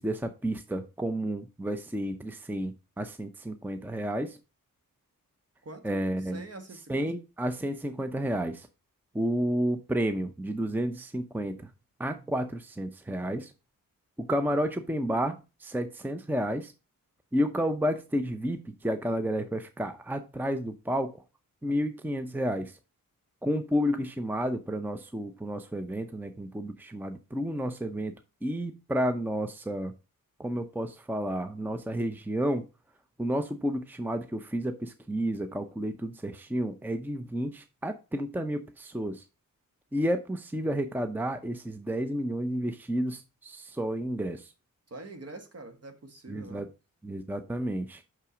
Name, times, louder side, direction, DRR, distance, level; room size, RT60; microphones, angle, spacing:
voice 1, 0.0-4.4 5.8-6.4 6.9-8.7 9.1-11.7 12.0-13.5 14.2-16.7 17.3-21.1 21.6-22.8 23.4-28.1 28.4-29.9 30.4-32.6 33.2-39.2 39.9-44.5 46.3-46.7 47.0-48.0, equal, 5° right, 0.7 m, -31 dB
voice 2, 5.6-7.1 44.9-46.7, right 2 dB, 45° right, 1.5 m, -45 dB
6.0 x 5.5 x 5.0 m
cardioid pair, 80°, 35 cm